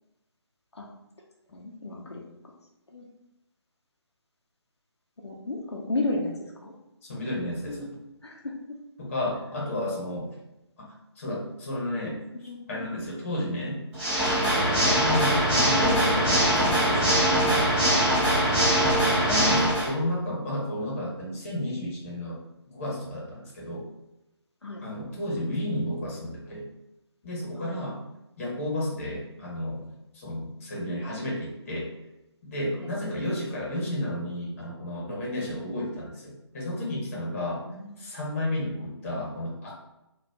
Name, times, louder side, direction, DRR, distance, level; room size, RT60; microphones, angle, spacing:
voice 1, 1.5-2.2 2.9-3.1 5.2-6.7 7.7-7.9 8.2-8.8 12.3-12.9 18.5-18.7 24.6-24.8 27.6-27.7 32.8-32.9 37.6-38.0, left 2 dB, 70° left, -2 dB, 0.6 m, -34 dB
voice 2, 7.0-7.9 9.0-10.3 11.2-13.8 14.3-17.7 18.8-22.4 22.7-23.9 24.8-26.7 27.2-28.0 28.4-31.9 32.4-37.6 38.0-39.7, left 1 dB, 30° left, -4 dB, 0.9 m, -32 dB
Water / Mechanisms, 13.9-19.9, right 1 dB, 5° right, 0.4 m, -22 dB
3.9 x 2.3 x 2.3 m, 0.94 s
figure-of-eight pair, 150°, 15 cm